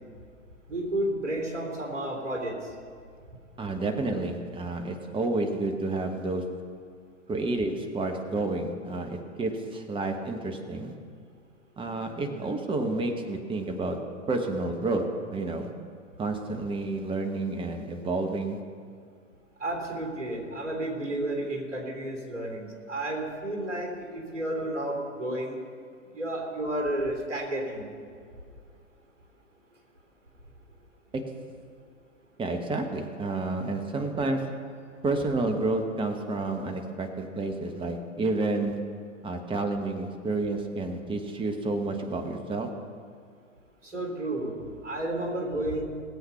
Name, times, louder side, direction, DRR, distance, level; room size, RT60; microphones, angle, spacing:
voice 1, 0.7-2.5 19.6-25.6 26.1-27.9 43.8-45.8, right 1 dB, 70° right, 0 dB, 3.4 m, -31 dB
voice 2, 3.6-6.6 7.3-10.9 11.8-15.7 16.2-18.7 31.3-31.4 32.4-34.6 35.0-38.9 39.2-42.8, right 2 dB, 15° right, 4 dB, 1.3 m, -30 dB
19.0 x 8.0 x 5.8 m, 2.1 s
figure-of-eight pair, 100°, 38 cm